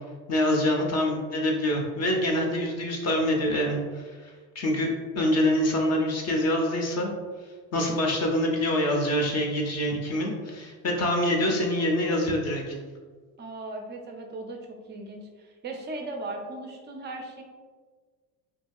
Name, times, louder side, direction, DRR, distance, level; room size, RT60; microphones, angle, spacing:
voice 1, 0.3-7.1 7.7-12.8, left 1 dB, 35° left, 0 dB, 0.5 m, -25 dB
voice 2, 13.4-17.4, right 2 dB, 25° right, 3 dB, 0.4 m, -38 dB
2.8 x 2.7 x 2.3 m, 1.5 s
supercardioid pair, 90°, 44 cm